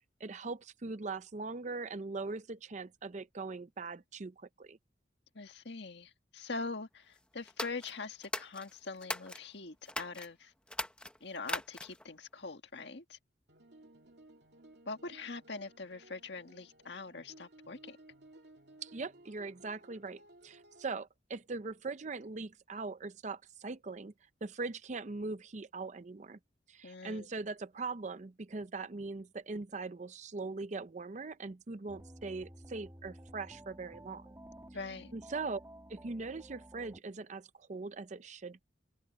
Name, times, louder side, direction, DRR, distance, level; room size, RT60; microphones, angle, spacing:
voice 1, 0.2-4.8 18.8-24.1 24.4-26.4 26.7-34.2 35.1-35.6 35.9-38.6, right 3 dB, 40° right, 0.6 m, -41 dB
voice 2, 5.4-10.5 11.2-13.2 14.9-18.0 26.8-27.3 34.7-35.1, left 3 dB, 75° left, 1.7 m, -43 dB
sound 1, 7.5-9.4 9.9-10.3 10.7-12.1, left 1 dB, 5° left, 1.0 m, -40 dB
sound 2, 13.5-20.9, right 1 dB, 65° right, 2.5 m, -59 dB
sound 3, 31.9-37.0, right 1 dB, 15° right, 2.1 m, -53 dB
open air
head